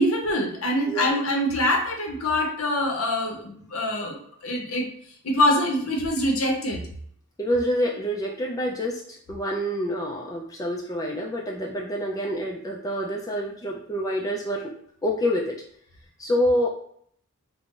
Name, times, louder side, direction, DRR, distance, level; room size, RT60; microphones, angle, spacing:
voice 1, 0.0-4.2 4.4-4.9 5.2-6.8, left 1 dB, 70° left, 1 dB, 0.6 m, -24 dB
voice 2, 7.4-14.7 15.0-15.6 16.2-16.7, equal, 15° left, -1 dB, 0.3 m, -27 dB
2.4 x 2.0 x 3.7 m, 0.64 s
head